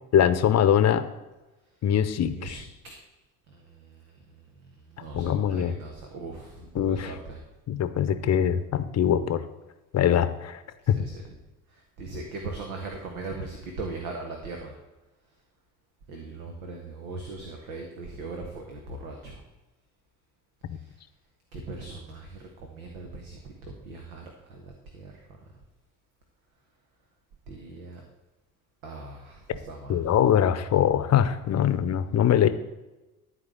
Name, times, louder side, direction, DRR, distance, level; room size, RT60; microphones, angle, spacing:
voice 1, 0.1-1.1 1.8-2.5 5.1-5.7 6.7-7.1 7.7-9.4 9.9-10.6 10.9-11.0 20.7-20.8 29.9-32.5, left 9 dB, 35° left, 12 dB, 0.9 m, -22 dB
voice 2, 2.3-2.9 3.5-4.5 4.9-7.4 10.8-11.4 11.7-14.7 16.1-19.3 20.7-20.9 21.5-25.2 27.5-28.0 28.8-30.1, right 3 dB, 70° right, 2 dB, 1.6 m, -40 dB
13.0 x 4.7 x 7.8 m, 1.1 s
figure-of-eight pair, 55°, 44 cm